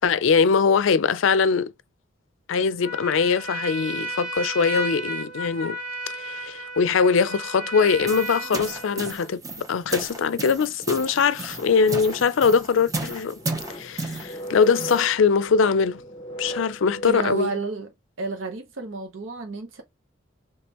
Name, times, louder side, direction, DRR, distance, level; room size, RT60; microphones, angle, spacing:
voice 1, 0.0-1.7 2.5-5.8 6.2-13.4 13.8-16.0 16.4-17.5, left 5 dB, 80° left, 0.4 m, -22 dB
Trumpet, 2.8-9.3, equal, 40° right, 1.5 m, -33 dB
sound 1, 7.9-15.1, right 2 dB, 15° right, 0.6 m, -34 dB
sound 2, 11.6-17.2, equal, 30° left, 0.8 m, -38 dB
voice 2, 17.0-17.9 18.2-19.8, right 3 dB, 80° right, 0.8 m, -31 dB
3.5 x 3.2 x 2.9 m
head